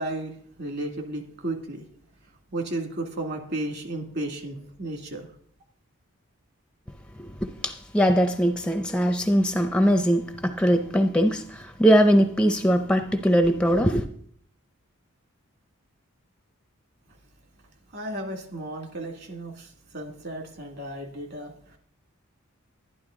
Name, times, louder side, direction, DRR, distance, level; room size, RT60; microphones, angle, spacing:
voice 1, 0.0-1.9 2.5-5.3 17.9-21.5, right 1 dB, 50° right, 4 dB, 2.1 m, -34 dB
voice 2, 7.2-14.1, equal, 5° left, 7 dB, 0.5 m, -21 dB
11.5 x 10.5 x 3.8 m, 0.62 s
head